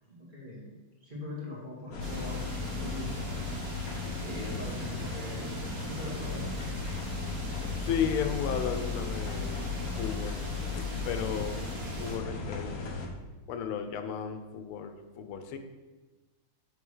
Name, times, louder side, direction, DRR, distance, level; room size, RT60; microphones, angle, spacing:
voice 1, 0.1-0.7 1.0-3.9 4.2-6.5, left 1 dB, 25° right, -6 dB, 1.7 m, -42 dB
sound 1, 1.9-13.1, left 3 dB, 55° left, 1.0 m, -35 dB
sound 2, 2.0-12.2, right 2 dB, 55° right, 1.6 m, -44 dB
voice 2, 7.8-9.6 9.9-10.4 10.7-11.7 12.0-12.8 13.5-15.6, left 7 dB, 85° left, 8 dB, 1.6 m, -34 dB
6.8 x 3.4 x 6.1 m, 1.2 s
omnidirectional pair, 2.4 m